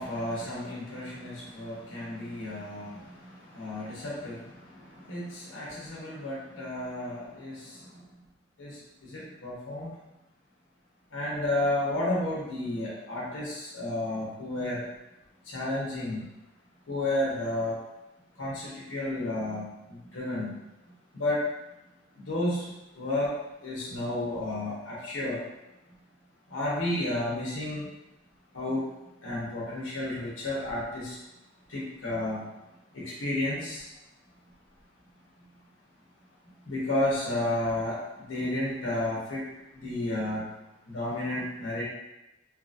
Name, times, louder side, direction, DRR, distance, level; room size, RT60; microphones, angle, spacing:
voice 1, 0.0-8.1 8.6-9.9 11.1-14.9 15.4-16.3 16.9-17.8 18.4-20.5 21.1-21.4 22.1-23.3 23.6-25.4 26.5-27.9 28.5-28.9 29.2-31.2 31.7-32.4 32.9-33.9 36.6-39.4 39.7-40.5 40.8-41.8, left 1 dB, 90° left, -6 dB, 0.9 m, -32 dB
2.8 x 2.6 x 2.5 m, 0.93 s
head